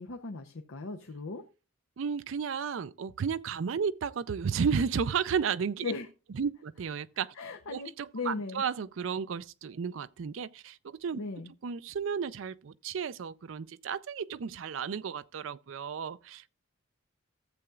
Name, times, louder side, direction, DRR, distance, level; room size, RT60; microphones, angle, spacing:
voice 1, 0.0-1.4 5.8-6.1 7.4-8.6 11.2-11.5, left 3 dB, 80° left, 0.7 m, -37 dB
voice 2, 2.0-5.9 6.3-7.3 7.7-11.2 11.6-16.5, right 6 dB, 70° right, 0.4 m, -33 dB
14.0 x 7.8 x 2.3 m
head